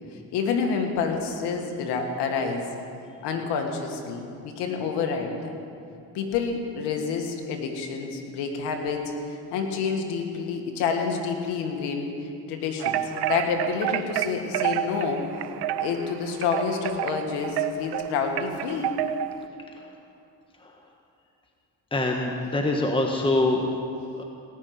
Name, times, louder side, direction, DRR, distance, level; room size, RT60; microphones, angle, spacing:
voice 1, 0.3-2.7 3.2-5.6 6.1-9.1 9.5-12.1 12.5-13.0 13.3-15.3 15.8-18.9, left 5 dB, 90° left, 3 dB, 1.8 m, -28 dB
sound 1, 12.8-19.4, right 11 dB, 75° right, 0.7 m, -29 dB
voice 2, 21.9-23.7 24.2-24.3, left 2 dB, 15° left, 1 dB, 1.4 m, -24 dB
18.5 x 6.5 x 9.4 m, 2.6 s
supercardioid pair, 75°, 39 cm